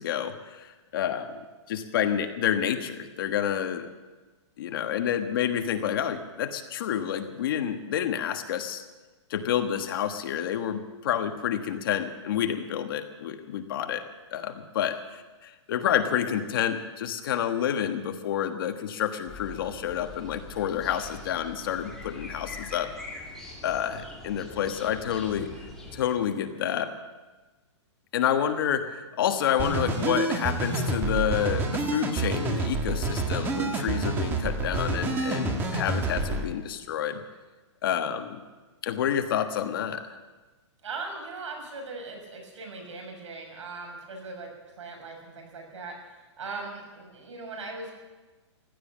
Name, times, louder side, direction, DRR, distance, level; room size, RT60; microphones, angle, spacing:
voice 1, 0.0-3.9 4.6-8.8 9.3-22.9 23.6-25.5 25.9-27.0 28.1-37.2 37.8-38.4 38.8-40.1, left 9 dB, 50° left, 7 dB, 1.4 m, -29 dB
sound 1, 19.2-26.1, left 2 dB, 5° left, 2.2 m, -43 dB
sound 2, 29.6-36.4, right 3 dB, 15° right, 1.3 m, -28 dB
voice 2, 40.8-44.5 44.7-48.0, right 3 dB, 85° right, 2 dB, 6.4 m, -39 dB
15.5 x 12.5 x 7.4 m, 1.2 s
hypercardioid pair, 170°, 15 cm